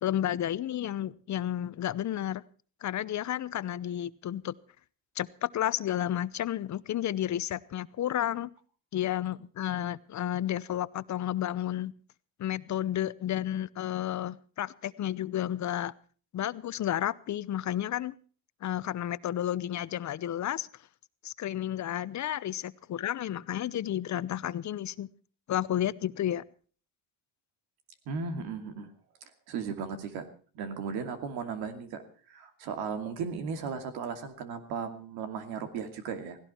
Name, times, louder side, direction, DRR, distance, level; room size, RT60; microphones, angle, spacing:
voice 1, 0.0-2.4 2.8-4.5 5.2-8.5 8.9-11.9 12.4-15.9 16.3-18.1 18.6-20.7 21.2-25.1 25.5-26.4, left 12 dB, 50° left, 17 dB, 0.8 m, -31 dB
voice 2, 28.1-28.9 29.5-30.3 30.5-32.0 32.3-36.4, right 5 dB, 90° right, 8 dB, 2.6 m, -36 dB
17.0 x 17.0 x 4.4 m, 0.41 s
cardioid pair, 95°, 37 cm